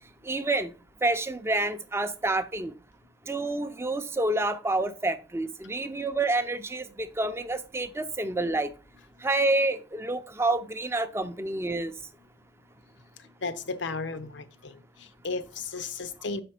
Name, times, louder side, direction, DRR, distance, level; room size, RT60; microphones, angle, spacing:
voice 1, 0.2-0.7 1.0-2.7 3.3-8.7 9.2-11.9, right 2 dB, 15° right, 0.5 m, -28 dB
voice 2, 13.4-16.4, left 4 dB, 80° left, 0.7 m, -34 dB
6.6 x 5.1 x 4.3 m
head